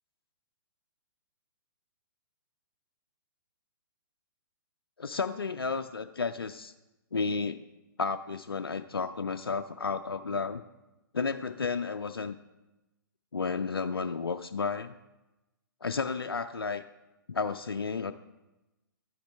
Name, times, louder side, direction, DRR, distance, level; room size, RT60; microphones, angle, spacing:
voice 1, 5.0-6.7 7.1-7.6 8.0-10.6 11.1-12.4 13.3-14.9 15.8-16.8 17.3-18.1, left 4 dB, 90° left, 10 dB, 0.4 m, -32 dB
12.5 x 8.5 x 3.3 m, 1.0 s
figure-of-eight pair, 125°, 12 cm